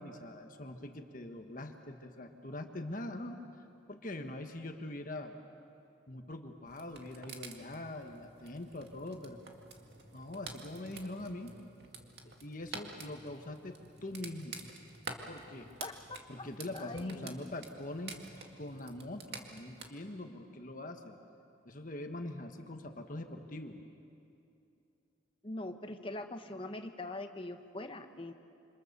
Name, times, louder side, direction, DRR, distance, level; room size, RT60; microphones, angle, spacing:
voice 1, 0.0-3.4 3.9-5.3 6.1-9.4 10.1-11.6 12.4-14.6 15.3-15.7 16.3-18.3 18.6-21.2 21.6-23.8, left 1 dB, 45° left, 5 dB, 1.4 m, -43 dB
sound 1, 6.7-19.9, right 4 dB, 60° right, 2.1 m, -49 dB
voice 2, 15.8-16.5 16.7-17.3 25.4-28.3, left 2 dB, 30° left, 6 dB, 1.1 m, -42 dB
27.5 x 26.5 x 6.9 m, 2.7 s
head